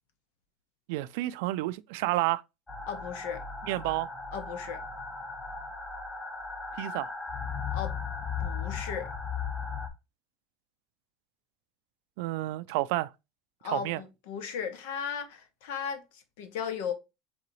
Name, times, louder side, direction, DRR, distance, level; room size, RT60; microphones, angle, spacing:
voice 1, 0.9-2.4 3.7-4.1 6.8-7.1 12.2-13.1 13.6-14.0, right 18 dB, 75° right, 0.3 m, -30 dB
sound 1, 2.7-9.9, left 5 dB, 15° left, 0.8 m, -36 dB
voice 2, 2.9-3.4 4.3-4.8 7.7-8.0 8.4-9.1 13.6-16.9, left 7 dB, 80° left, 0.9 m, -36 dB
3.8 x 3.8 x 3.0 m
supercardioid pair, 125°, 0 cm